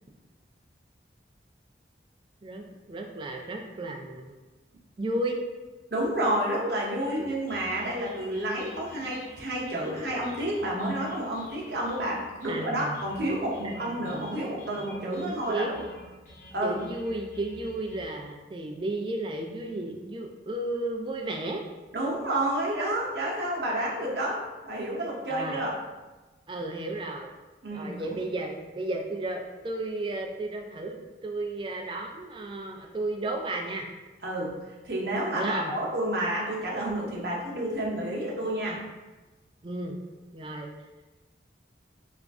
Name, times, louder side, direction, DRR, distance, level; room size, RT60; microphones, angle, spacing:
voice 1, 2.4-4.3 5.0-5.4 12.5-13.0 13.6-14.4 15.1-15.7 16.6-21.6 25.3-25.6 26.5-27.3 27.7-33.9 35.3-35.7 39.6-40.0 40.3-40.7, right 2 dB, 25° right, 2 dB, 0.3 m, -33 dB
voice 2, 5.9-15.8 16.5-16.8 21.9-25.7 27.6-28.2 34.2-34.6 34.8-38.8, right 1 dB, 60° right, -4 dB, 0.8 m, -30 dB
sound 1, 7.0-18.1, left 1 dB, 45° left, 1.0 m, -50 dB
3.1 x 2.5 x 3.5 m, 1.2 s
head